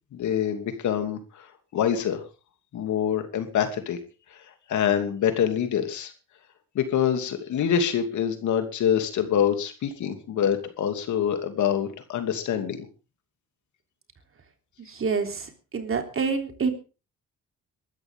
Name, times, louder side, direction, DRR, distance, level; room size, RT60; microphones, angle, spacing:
voice 1, 0.1-1.5 1.7-2.2 2.7-4.0 4.3-4.4 4.7-6.1 6.7-12.9, left 9 dB, 75° left, 7 dB, 2.7 m, -25 dB
voice 2, 14.8-16.7, right 5 dB, 45° right, 5 dB, 3.4 m, -27 dB
22.5 x 13.0 x 3.7 m, 0.34 s
cardioid pair, 90°, 30 cm